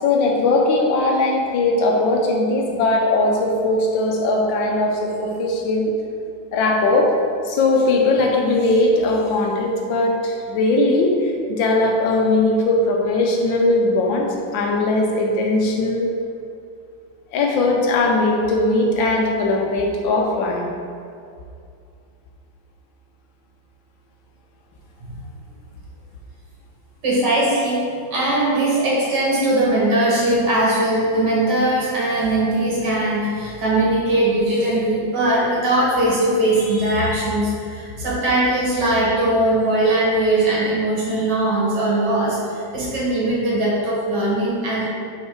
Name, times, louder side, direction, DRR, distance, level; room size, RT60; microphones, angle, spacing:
voice 1, 0.0-6.0 6.5-7.1 7.4-16.1 17.3-20.7, left 2 dB, 85° left, 1 dB, 1.5 m, -19 dB
voice 2, 27.0-27.9 28.1-44.9, right 1 dB, 65° right, -6 dB, 2.1 m, -20 dB
5.6 x 3.8 x 4.5 m, 2.4 s
omnidirectional pair, 2.0 m